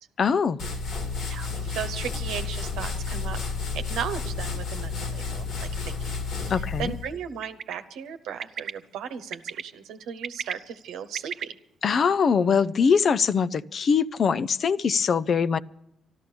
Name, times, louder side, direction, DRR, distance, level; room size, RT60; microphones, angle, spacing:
voice 1, 0.2-0.6 6.5-6.9 11.8-15.6, left 6 dB, 50° left, 15 dB, 0.5 m, -22 dB
sound 1, 0.6-7.1, left 4 dB, 80° left, 2.4 m, -31 dB
voice 2, 1.3-3.4 3.7-6.0 6.5-11.6, right 8 dB, 90° right, 8 dB, 1.1 m, -36 dB
Bird, 7.4-7.7 8.4-8.7 9.3-9.6 10.1-11.4, right 7 dB, 65° right, 0.7 m, -34 dB
12.5 x 12.5 x 6.9 m, 0.78 s
cardioid pair, 90°, 0 cm